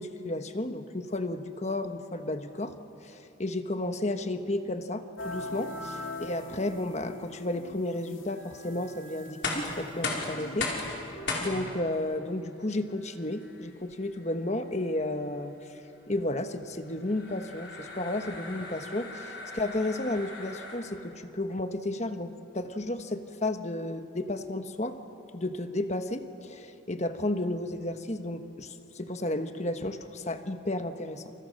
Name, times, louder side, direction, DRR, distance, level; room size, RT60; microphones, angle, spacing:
voice 1, 0.0-2.8 3.0-10.7 11.4-15.8 16.1-25.0 25.3-31.3, left 1 dB, 35° left, 8 dB, 1.3 m, -33 dB
sound 1, 5.2-11.7, left 2 dB, 80° left, 2.7 m, -42 dB
sound 2, 9.2-21.1, left 3 dB, 60° left, 4.9 m, -38 dB
29.0 x 28.5 x 6.6 m, 2.8 s
head